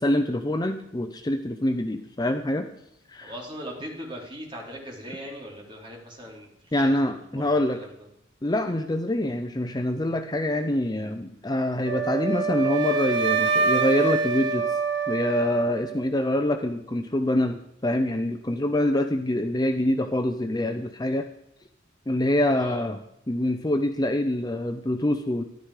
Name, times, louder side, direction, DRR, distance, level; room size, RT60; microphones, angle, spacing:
voice 1, 0.0-2.7 3.1-3.3 6.7-7.8 8.4-14.8 15.1-21.3 22.1-23.0 23.3-25.4, left 1 dB, 20° left, 7 dB, 0.6 m, -25 dB
voice 2, 3.2-8.1 22.5-22.9, equal, 25° right, -2 dB, 3.4 m, -40 dB
Wind instrument woodwind instrument, 11.9-16.0, right 5 dB, 60° right, 1.2 m, -25 dB
13.5 x 11.5 x 4.8 m, 0.82 s
head